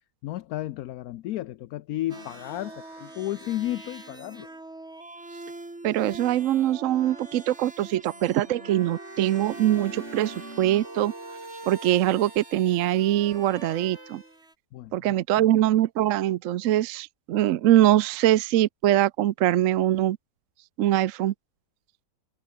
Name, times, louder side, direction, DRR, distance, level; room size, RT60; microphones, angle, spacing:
voice 1, 0.2-4.5 14.7-14.9 15.4-15.5, left 14 dB, 70° left, 1.0 m, -33 dB
sound 1, 2.1-14.5, right 2 dB, 40° right, 5.3 m, -42 dB
voice 2, 5.8-11.1 11.7-14.2 14.9-20.2 20.8-21.3, right 13 dB, 65° right, 0.8 m, -23 dB
omnidirectional pair, 1.8 m